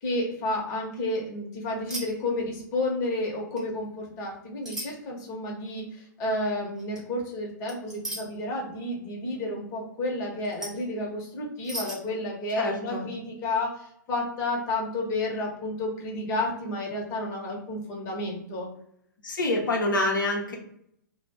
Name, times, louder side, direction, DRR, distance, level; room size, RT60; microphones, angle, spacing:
voice 1, 0.0-18.7, left 2 dB, 30° left, -1 dB, 0.8 m, -31 dB
sound 1, 1.9-2.1 2.3-2.7 3.5-3.7 4.6-4.9 6.8-7.0 7.7-8.2 10.4-10.8 11.6-12.0, right 1 dB, 5° right, 0.7 m, -36 dB
voice 2, 12.6-13.1 19.2-20.6, left 2 dB, 75° left, 0 dB, 0.7 m, -27 dB
2.3 x 2.1 x 3.3 m, 0.71 s
figure-of-eight pair, 115°, 11 cm